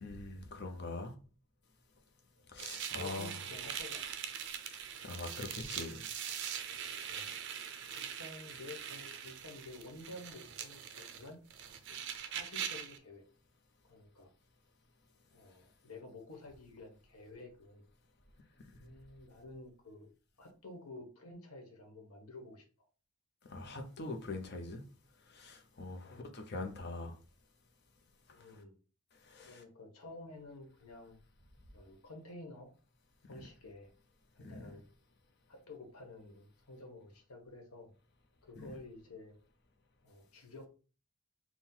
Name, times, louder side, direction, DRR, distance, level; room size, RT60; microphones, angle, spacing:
voice 1, 0.0-1.1 2.5-3.4 5.0-6.1 23.5-24.8 25.3-27.2 29.3-29.6 33.3-33.5 34.4-34.7 38.6-38.7, left 2 dB, 50° left, 0.7 m, -43 dB
sound 1, 2.6-13.0, right 8 dB, 50° right, 0.4 m, -42 dB
voice 2, 3.0-4.2 7.1-7.3 7.9-11.4 11.9-13.2 13.9-14.3 15.3-17.8 18.8-20.1 20.4-22.9 26.1-26.3 28.3-28.8 29.4-31.2 31.7-32.7 33.3-33.9 34.3-34.8 35.5-37.9 38.4-39.3 40.0-40.7, left 2 dB, 80° left, 1.2 m, -51 dB
3.8 x 2.3 x 4.4 m
head